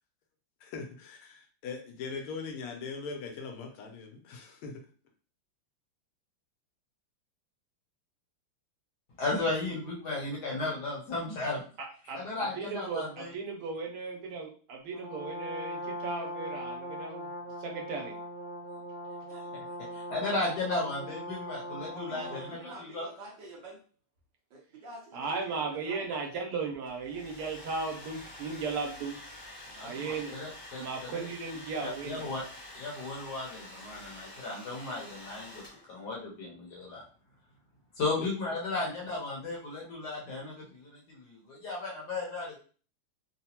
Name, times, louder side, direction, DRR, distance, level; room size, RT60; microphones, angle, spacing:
voice 1, 0.7-1.2 1.6-4.8 38.2-38.3, left 5 dB, 85° left, 2 dB, 1.6 m, -40 dB
voice 2, 9.2-11.6 12.1-13.3 19.3-19.6 19.9-23.0 29.8-31.3 31.8-32.4 32.7-35.6 35.9-37.0 38.0-42.6, left 2 dB, 60° left, -3 dB, 1.2 m, -35 dB
voice 3, 12.6-17.3 17.6-18.2 25.1-29.2 29.7-30.4 30.8-32.3, right 4 dB, 85° right, 0 dB, 1.6 m, -36 dB
Brass instrument, 14.9-22.6, equal, 45° right, 1.6 m, -40 dB
voice 4, 21.9-23.8 24.5-26.2, right 1 dB, 65° right, -2 dB, 1.3 m, -47 dB
Domestic sounds home sounds, 26.9-36.1, left 1 dB, 35° left, 0.9 m, -48 dB
3.9 x 2.1 x 2.8 m, 0.40 s
omnidirectional pair, 2.4 m